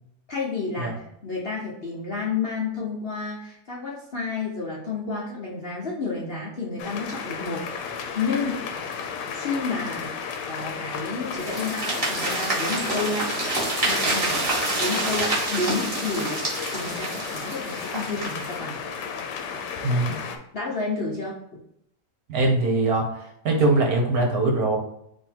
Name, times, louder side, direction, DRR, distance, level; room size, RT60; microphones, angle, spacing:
voice 1, 0.3-7.7 8.1-8.7 9.3-10.1 10.5-13.3 13.8-14.5 14.8-16.4 16.7-18.8 20.5-21.4, left 4 dB, 50° left, -5 dB, 0.8 m, -30 dB
sound 1, 6.8-20.4, left 6 dB, 85° left, 1.3 m, -33 dB
sound 2, 11.4-18.6, right 2 dB, 35° right, 1.6 m, -28 dB
voice 2, 19.8-20.2 22.3-23.1 23.4-24.8, right 2 dB, 65° right, 1 dB, 1.3 m, -21 dB
3.8 x 3.0 x 4.4 m, 0.74 s
omnidirectional pair, 1.8 m